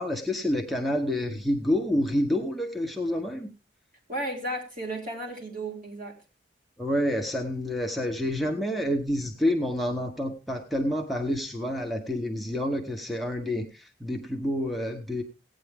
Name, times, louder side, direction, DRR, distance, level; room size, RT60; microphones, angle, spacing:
voice 1, 0.0-3.5 6.8-15.2, left 1 dB, ahead, 4 dB, 0.9 m, -28 dB
voice 2, 4.1-6.1, right 1 dB, 50° right, -2 dB, 4.3 m, -34 dB
16.5 x 9.0 x 3.5 m, 0.30 s
head